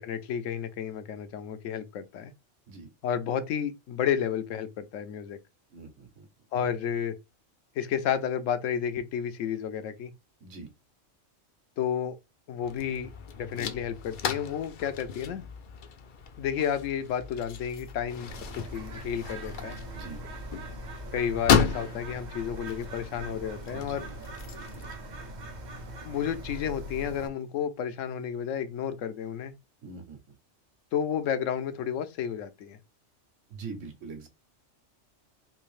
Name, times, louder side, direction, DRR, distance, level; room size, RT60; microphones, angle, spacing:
voice 1, 0.0-2.3 3.0-5.4 6.5-7.2 7.8-10.1 11.8-12.2 12.5-13.1 13.4-15.5 16.4-19.8 21.1-24.1 26.1-29.5 30.9-32.8, left 8 dB, 85° left, 1.0 m, -31 dB
voice 2, 5.7-6.3 10.4-10.7 19.9-20.2 23.7-24.1 29.8-30.2 33.5-34.3, right 4 dB, 75° right, 1.3 m, -42 dB
sound 1, 12.6-25.0, left 7 dB, 60° left, 0.5 m, -34 dB
Bird, 18.3-27.3, right 1 dB, 50° right, 0.5 m, -41 dB
3.4 x 2.7 x 3.1 m
omnidirectional pair, 1.3 m